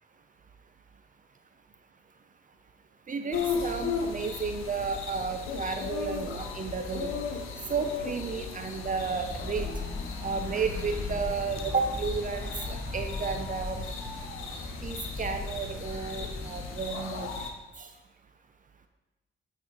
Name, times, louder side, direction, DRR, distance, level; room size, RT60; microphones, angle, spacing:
voice 1, 3.1-7.1 7.7-9.7 10.2-13.9 14.8-17.3 17.8-17.9, right 5 dB, 40° right, 6 dB, 0.6 m, -32 dB
sound 1, 3.3-17.5, left 5 dB, 85° left, 0.9 m, -36 dB
sound 2, 9.0-16.8, left 2 dB, 15° left, 2.6 m, -39 dB
8.9 x 4.0 x 4.5 m, 1.1 s
cardioid pair, 75°, 20 cm